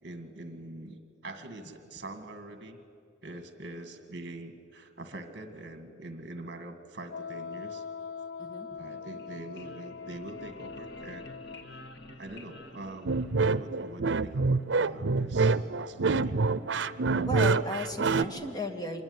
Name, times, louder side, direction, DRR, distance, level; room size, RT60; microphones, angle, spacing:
voice 1, 0.0-2.8 3.2-7.9 8.8-11.2 12.2-16.5 17.9-18.8, right 2 dB, 55° right, 7 dB, 1.9 m, -44 dB
Wind instrument woodwind instrument, 7.1-11.8, left 5 dB, 90° left, 0.7 m, -42 dB
sound 1, 9.0-13.7, left 1 dB, 65° left, 2.0 m, -49 dB
sound 2, 13.1-18.2, right 4 dB, 80° right, 0.6 m, -26 dB
voice 2, 17.1-19.0, left 1 dB, 20° left, 5 dB, 2.1 m, -35 dB
25.0 x 21.5 x 9.7 m, 2.3 s
head